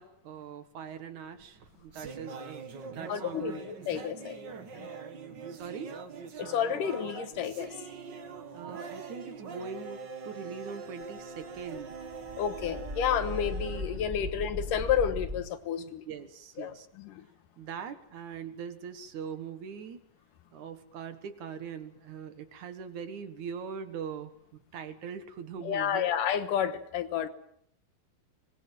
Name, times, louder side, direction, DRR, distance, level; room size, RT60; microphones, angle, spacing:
voice 1, 0.0-3.6 5.5-6.0 8.5-12.1 15.8-16.9 17.6-20.1 20.5-24.3 24.7-26.1, right 7 dB, 60° right, 9 dB, 2.7 m, -41 dB
sound 1, 1.4-14.8, right 5 dB, 45° right, 1.5 m, -43 dB
voice 2, 3.1-4.4 4.7-5.0 6.4-7.7 12.4-16.0 16.6-17.3 25.6-27.3, left 9 dB, 70° left, 11 dB, 2.7 m, -31 dB
sound 2, 11.4-15.4, left 1 dB, 10° right, 3.8 m, -38 dB
25.0 x 19.5 x 7.5 m, 0.67 s
omnidirectional pair, 4.1 m